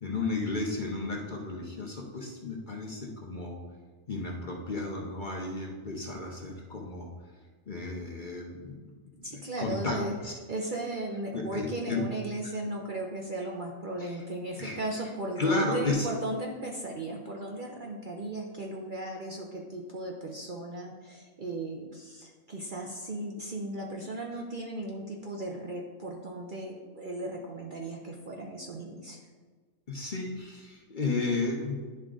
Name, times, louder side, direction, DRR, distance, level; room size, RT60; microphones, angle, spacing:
voice 1, 0.0-3.6 4.1-7.1 7.7-10.3 11.3-12.0 14.0-14.2 14.6-14.8 15.4-16.1 29.9-31.7, left 3 dB, 40° left, 0 dB, 0.8 m, -33 dB
voice 2, 9.2-10.1 10.5-29.2, right 2 dB, 45° right, -1 dB, 0.7 m, -36 dB
10.5 x 3.7 x 3.7 m, 1.4 s
omnidirectional pair, 1.4 m